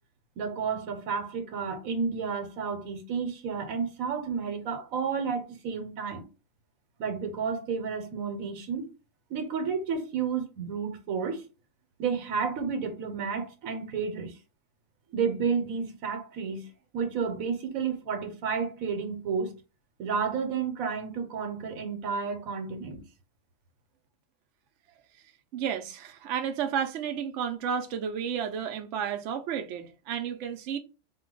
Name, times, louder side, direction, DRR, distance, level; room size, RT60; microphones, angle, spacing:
voice 1, 0.4-6.2 7.0-8.8 9.3-11.4 12.0-14.3 15.1-19.6 20.0-23.0, right 6 dB, 85° right, 1.2 m, -31 dB
voice 2, 25.5-30.8, right 8 dB, 65° right, 0.8 m, -32 dB
4.2 x 2.3 x 3.7 m
omnidirectional pair, 1.4 m